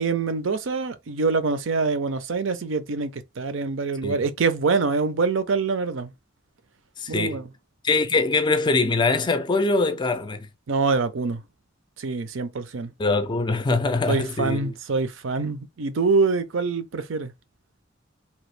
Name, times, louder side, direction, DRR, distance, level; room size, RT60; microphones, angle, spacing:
voice 1, 0.0-6.1 7.1-7.5 10.7-11.4 12.0-12.9 14.1-17.3, right 4 dB, 85° right, 0.6 m, -25 dB
voice 2, 7.0-7.4 7.8-10.5 13.0-14.7, left 3 dB, 25° left, 0.3 m, -23 dB
2.9 x 2.3 x 3.2 m
head